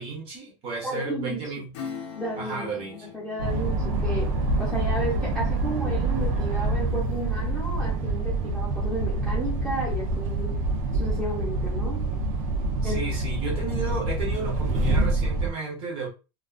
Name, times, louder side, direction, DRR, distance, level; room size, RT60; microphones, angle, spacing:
voice 1, 0.0-1.7 2.4-3.0 12.8-16.1, right 4 dB, 30° right, 0.8 m, -33 dB
voice 2, 0.8-1.5 2.1-12.1 12.8-13.0, right 1 dB, 5° left, 0.8 m, -33 dB
Acoustic guitar / Strum, 1.7-7.9 8.3-8.4, left 7 dB, 55° left, 0.6 m, -44 dB
sound 1, 3.4-15.5, right 2 dB, 60° right, 0.6 m, -26 dB
2.3 x 2.3 x 2.3 m
supercardioid pair, 180°, 19 cm